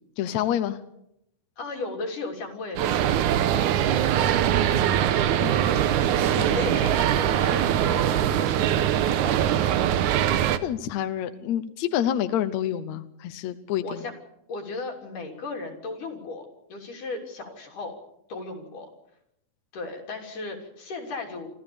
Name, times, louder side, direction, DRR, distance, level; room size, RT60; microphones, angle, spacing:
voice 1, 0.2-0.8 5.4-5.6 10.6-14.0, left 10 dB, 70° left, 10 dB, 2.0 m, -28 dB
voice 2, 1.6-3.0 3.4-3.7 6.3-8.8 13.8-14.1 14.5-17.9 18.3-18.9 19.7-21.5, left 3 dB, 85° left, 2 dB, 4.8 m, -36 dB
sound 1, 2.8-10.6, right 10 dB, 75° right, 2.4 m, -22 dB
26.0 x 14.5 x 7.1 m, 0.79 s
omnidirectional pair, 3.6 m